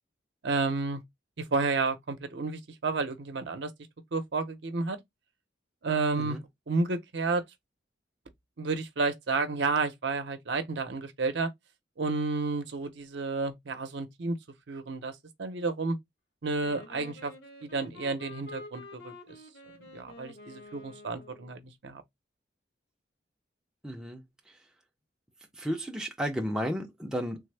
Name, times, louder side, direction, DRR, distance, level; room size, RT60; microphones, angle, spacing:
voice 1, 0.4-1.0 1.4-3.7 4.1-5.0 5.8-6.4 6.7-7.4 8.6-11.5 12.0-14.4 14.7-16.0 16.4-17.3 17.6-19.1 19.9-22.0, right 3 dB, 70° right, 0.6 m, -31 dB
Wind instrument woodwind instrument, 16.6-21.6, left 2 dB, 75° left, 1.2 m, -48 dB
voice 2, 23.8-24.2 25.6-27.4, equal, 5° right, 0.4 m, -33 dB
3.4 x 2.0 x 3.2 m
head